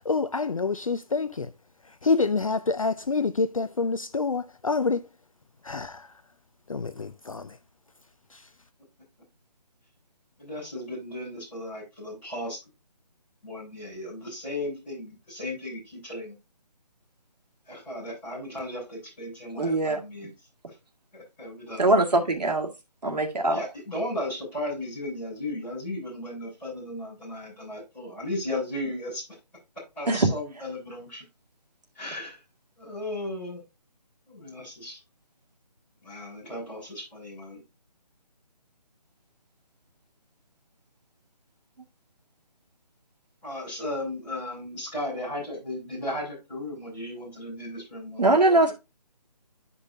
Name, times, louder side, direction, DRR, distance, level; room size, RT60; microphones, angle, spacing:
voice 1, 0.1-1.5 2.0-5.0 5.6-6.1 6.7-7.5, left 4 dB, 55° left, 0.5 m, -27 dB
voice 2, 10.4-12.6 13.4-16.4 17.7-20.3 20.7-20.8 21.1-21.8 22.1-22.3 23.5-29.2 30.0-31.2 31.9-32.4 32.8-33.6 34.3-35.0 36.0-37.6 43.4-48.7, left 1 dB, 5° left, 5.5 m, -35 dB
voice 3, 19.6-20.0 21.8-22.7 23.0-23.6 30.1-30.3 48.2-48.7, right 2 dB, 75° right, 2.0 m, -21 dB
12.0 x 5.3 x 2.6 m
hypercardioid pair, 180°, 21 cm